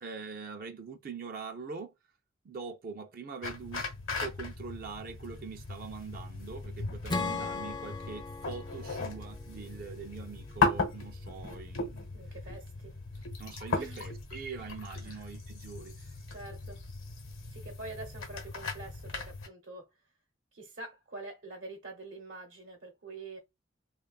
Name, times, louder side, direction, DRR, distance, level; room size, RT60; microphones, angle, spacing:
voice 1, 0.0-1.9 2.4-3.8 4.2-12.1 13.4-16.2, right 5 dB, 45° right, 0.4 m, -43 dB
sound 1, 3.4-19.5, left 4 dB, 85° left, 0.9 m, -37 dB
Acoustic guitar / Strum, 7.1-10.5, left 3 dB, 20° left, 0.4 m, -38 dB
voice 2, 12.1-13.0 13.7-14.0 14.6-14.7 15.0-15.3 16.3-16.8 17.5-19.9 20.5-23.4, right 2 dB, 70° right, 0.8 m, -46 dB
3.1 x 2.3 x 2.3 m
head